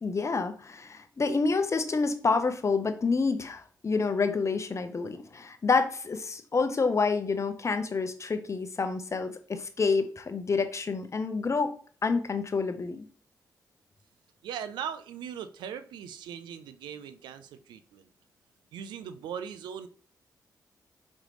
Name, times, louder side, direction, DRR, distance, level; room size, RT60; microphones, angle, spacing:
voice 1, 0.0-11.7 12.0-13.0, left 4 dB, 40° left, 8 dB, 0.7 m, -28 dB
voice 2, 14.4-18.1 18.7-19.9, right 8 dB, 90° right, 11 dB, 0.4 m, -39 dB
5.1 x 3.1 x 3.2 m, 0.43 s
supercardioid pair, 55°, 7 cm